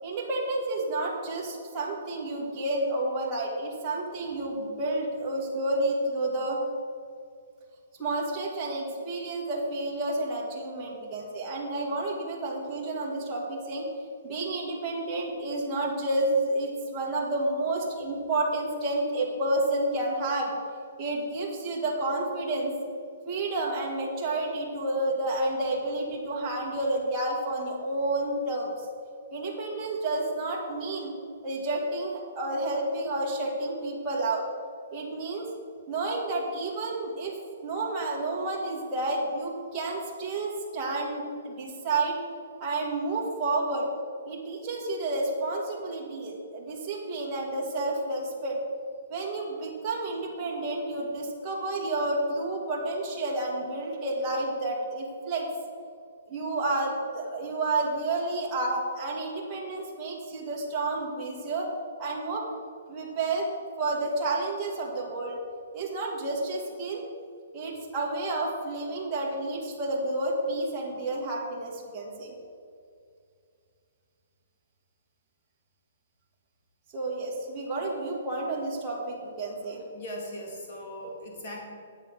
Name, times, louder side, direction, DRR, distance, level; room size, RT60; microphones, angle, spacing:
voice 1, 0.0-6.6 8.0-13.9 14.2-20.5 21.0-22.7 23.3-28.8 29.3-31.1 31.4-34.4 34.9-35.5 35.9-37.4 37.6-42.2 42.6-43.9 44.3-48.6 49.1-55.5 56.3-61.7 62.0-62.5 62.9-63.5 63.8-65.4 65.7-67.0 67.5-72.3 76.9-79.8, right 2 dB, 15° right, -5 dB, 2.0 m, -30 dB
voice 2, 79.9-81.6, equal, 35° left, -1 dB, 2.4 m, -39 dB
10.5 x 8.3 x 6.2 m, 2.3 s
hypercardioid pair, 175°, 0 cm